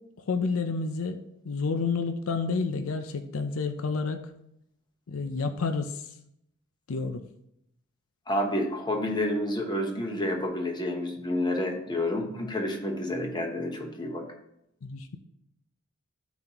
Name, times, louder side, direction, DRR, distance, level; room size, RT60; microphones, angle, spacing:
voice 1, 0.3-4.2 5.1-5.9 6.9-7.2 14.8-15.2, left 4 dB, 80° left, 7 dB, 0.6 m, -29 dB
voice 2, 8.3-14.3, left 1 dB, 20° left, 2 dB, 1.1 m, -29 dB
12.0 x 4.1 x 3.0 m, 0.78 s
head